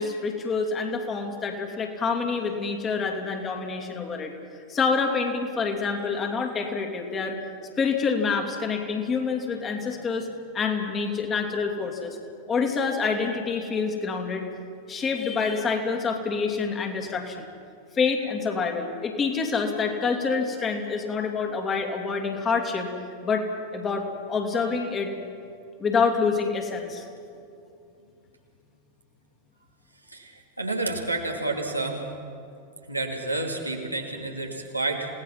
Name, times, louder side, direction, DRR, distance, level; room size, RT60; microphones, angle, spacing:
voice 1, 0.0-4.3 4.7-7.4 7.8-10.3 10.5-12.2 12.5-14.5 14.9-17.5 17.9-22.9 23.2-23.5 23.7-25.1 25.8-27.0, left 5 dB, 25° left, 3 dB, 2.8 m, -27 dB
voice 2, 30.1-32.0 32.9-35.1, right 2 dB, 85° right, 1 dB, 2.6 m, -30 dB
28.5 x 18.0 x 5.9 m, 2.5 s
figure-of-eight pair, 90°, 0 cm